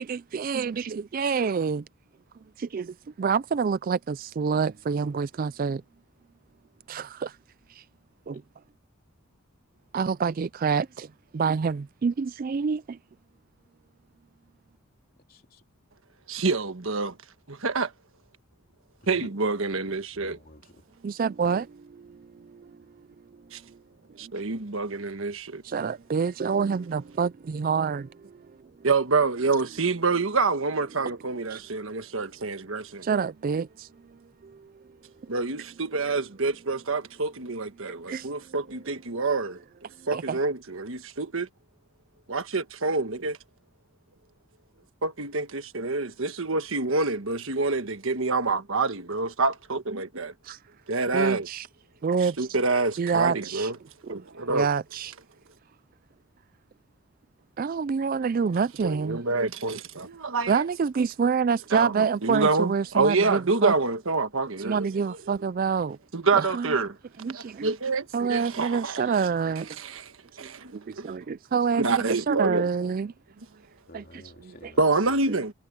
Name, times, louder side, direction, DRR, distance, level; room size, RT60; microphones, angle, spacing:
voice 1, 0.0-1.8 2.6-5.8 6.9-7.4 7.7-7.8 8.3-8.4 9.9-11.1 11.3-13.0 21.0-22.7 23.7-23.8 24.2-24.3 25.6-28.4 31.5-31.6 33.0-33.9 34.4-34.7 38.1-38.3 40.1-40.4 50.4-50.6 51.1-51.7 52.0-52.5 53.0-53.7 54.0-54.1 54.5-55.1 57.6-59.2 60.5-63.7 64.6-66.0 66.4-66.7 67.2-67.7 68.1-69.8 70.4-73.1 73.9-74.0 74.5-74.7, right 5 dB, 40° right, 0.3 m, -27 dB
voice 2, 15.3-15.6 19.0-19.3 19.9-20.8 24.3-24.4 69.4-69.6 73.9-75.2, left 1 dB, 40° left, 3.8 m, -50 dB
voice 3, 16.3-17.2 17.5-17.9 19.1-20.4 23.5-23.6 24.2-25.6 28.8-33.1 35.3-39.6 40.1-41.5 42.3-43.4 45.0-50.3 50.9-51.5 52.2-53.8 54.1-54.7 58.8-60.6 61.7-64.9 66.1-66.9 67.3-69.3 69.8-70.1 70.4-71.1 71.8-72.7 74.8-75.5, right 3 dB, 65° right, 1.4 m, -27 dB
head